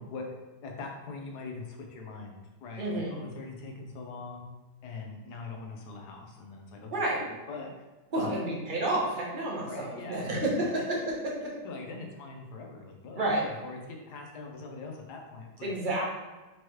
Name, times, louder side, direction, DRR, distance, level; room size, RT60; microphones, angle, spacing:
voice 1, 0.0-4.4 4.8-6.9 7.2-7.7 8.1-8.4 9.7-10.2 11.6-15.7, left 3 dB, 75° left, 1 dB, 1.3 m, -42 dB
voice 2, 2.8-3.1 6.9-7.2 8.1-11.6 13.1-13.4 15.6-16.0, right 1 dB, 35° right, -3 dB, 0.9 m, -30 dB
4.7 x 3.0 x 3.0 m, 1.2 s
omnidirectional pair, 1.8 m